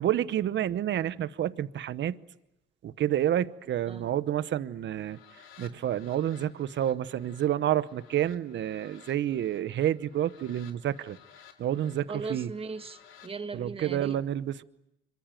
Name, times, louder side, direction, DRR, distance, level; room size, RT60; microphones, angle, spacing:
voice 1, 0.0-2.2 2.8-5.2 5.6-11.2 11.6-12.5 13.5-14.6, right 11 dB, 65° right, 0.9 m, -29 dB
sound 1, 4.8-13.3, left 9 dB, 85° left, 2.5 m, -56 dB
voice 2, 12.1-14.2, right 4 dB, 30° right, 1.7 m, -38 dB
25.5 x 23.5 x 9.0 m
cardioid pair, 90°, 20 cm